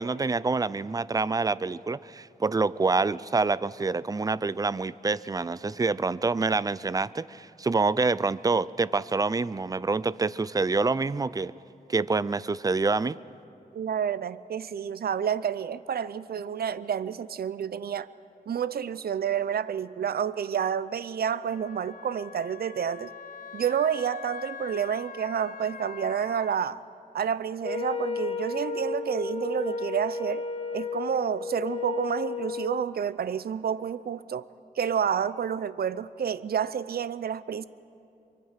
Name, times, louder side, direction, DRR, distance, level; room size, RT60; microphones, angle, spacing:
voice 1, 0.0-11.5 11.9-13.2, right 3 dB, 25° right, 18 dB, 0.4 m, -26 dB
voice 2, 13.7-18.1 18.5-23.1 23.5-26.8 27.1-30.4 30.7-34.5 34.8-37.6, right 8 dB, 80° right, 16 dB, 0.5 m, -29 dB
Wind instrument woodwind instrument, 21.5-26.6, left 7 dB, 65° left, 0.4 m, -43 dB
Wind instrument woodwind instrument 2, 27.6-32.9, left 4 dB, 40° left, 1.1 m, -32 dB
24.0 x 23.5 x 5.8 m, 2.7 s
wide cardioid pair, 95°, 16 cm